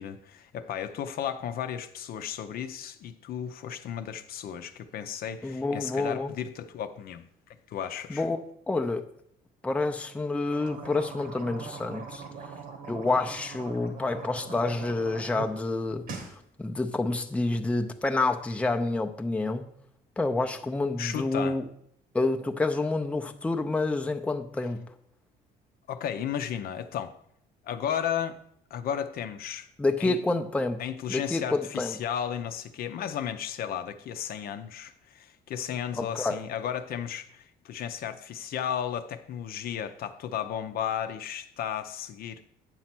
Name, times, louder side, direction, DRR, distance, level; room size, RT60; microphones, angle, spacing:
voice 1, 0.0-7.3 7.7-8.3 21.0-21.6 25.9-27.1 27.6-28.4 28.7-29.7 30.0-30.2 30.8-42.5, left 9 dB, 60° left, 0.6 m, -34 dB
voice 2, 5.4-6.3 8.1-8.4 8.7-9.0 9.6-12.2 12.9-19.7 20.2-21.7 22.1-24.9 29.8-30.8 31.1-32.0 36.0-36.4, left 2 dB, 5° left, 0.6 m, -28 dB
sound 1, 10.4-15.5 15.8-16.3, right 5 dB, 60° right, 1.2 m, -42 dB
8.9 x 4.2 x 6.0 m
cardioid pair, 110°, 17 cm